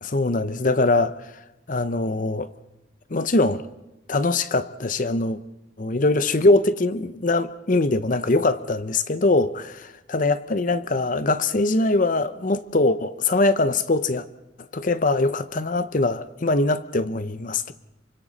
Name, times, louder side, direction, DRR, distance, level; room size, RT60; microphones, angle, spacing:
voice 1, 0.0-1.3 1.7-2.5 3.1-3.6 4.1-5.4 5.8-9.7 10.1-14.3 14.7-17.7, left 2 dB, 45° left, 13 dB, 0.7 m, -22 dB
27.5 x 25.5 x 4.1 m, 0.95 s
head